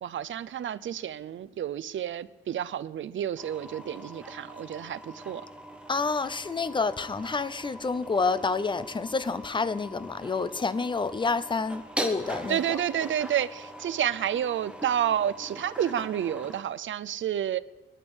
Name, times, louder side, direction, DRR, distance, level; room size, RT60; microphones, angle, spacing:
voice 1, 0.0-5.4 12.5-17.6, right 10 dB, 70° right, 0.6 m, -30 dB
sound 1, 3.4-16.6, right 1 dB, 5° right, 1.4 m, -41 dB
voice 2, 5.9-12.8, left 4 dB, 25° left, 0.7 m, -29 dB
19.0 x 12.0 x 6.4 m
wide cardioid pair, 135°, 20 cm